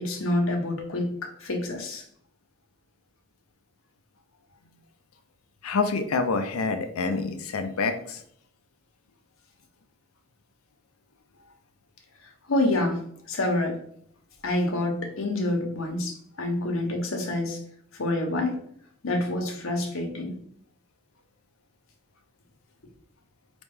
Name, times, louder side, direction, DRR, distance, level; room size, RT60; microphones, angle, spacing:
voice 1, 0.0-2.0 12.5-13.0 13.3-13.8 14.4-17.6 18.0-18.5 19.0-20.4, left 1 dB, 75° left, 2 dB, 1.0 m, -27 dB
voice 2, 5.6-8.2, left 4 dB, 90° left, 7 dB, 0.5 m, -27 dB
4.3 x 2.9 x 3.6 m, 0.65 s
head